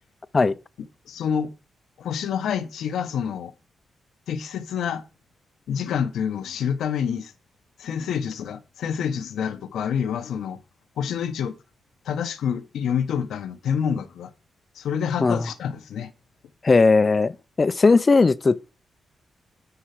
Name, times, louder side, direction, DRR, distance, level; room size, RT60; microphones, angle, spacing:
voice 1, 1.1-1.5 2.0-3.5 4.3-5.0 5.7-7.3 7.8-10.6 11.0-11.5 12.0-14.3 14.8-16.1, left 7 dB, 85° left, 1.0 m, -27 dB
voice 2, 16.6-18.7, left 3 dB, 35° left, 0.6 m, -18 dB
9.8 x 4.6 x 5.9 m
cardioid pair, 75°, 0 cm